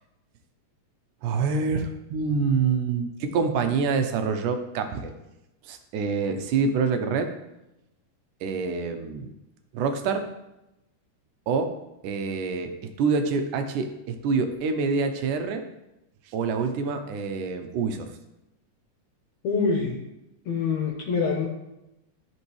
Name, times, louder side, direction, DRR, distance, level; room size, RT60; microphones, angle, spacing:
voice 1, 1.2-5.1 5.6-7.3 8.4-9.3 9.7-10.3 11.5-11.7 12.0-12.7 13.0-15.7 16.3-18.1, right 5 dB, 85° right, 6 dB, 2.3 m, -26 dB
voice 2, 19.4-20.0 20.5-21.5, left 5 dB, 70° left, -1 dB, 2.0 m, -25 dB
13.5 x 5.3 x 3.2 m, 0.91 s
omnidirectional pair, 3.7 m